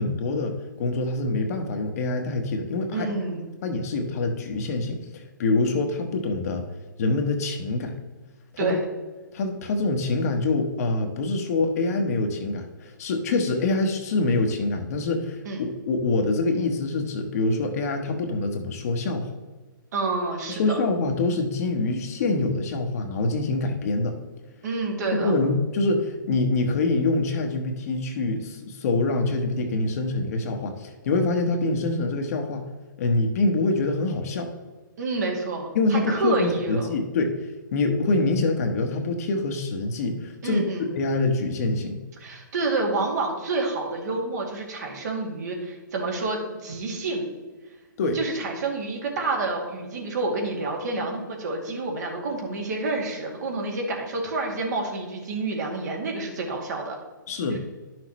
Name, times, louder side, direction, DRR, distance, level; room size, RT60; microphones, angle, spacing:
voice 1, 0.0-3.1 3.6-6.6 7.0-7.9 8.6-8.8 9.3-19.3 20.5-24.2 25.1-32.7 33.0-34.5 35.7-37.4 37.7-40.6 40.9-42.0 48.0-48.2 57.3-57.6, left 2 dB, 45° left, 4 dB, 1.1 m, -25 dB
voice 2, 2.9-3.5 8.6-8.8 15.5-15.6 19.9-20.8 24.6-25.3 35.0-36.9 40.4-40.9 42.2-47.3 48.1-57.0 57.5-57.6, right 3 dB, 55° right, 0 dB, 2.2 m, -28 dB
11.5 x 6.1 x 3.1 m, 1.3 s
hypercardioid pair, 140°, 11 cm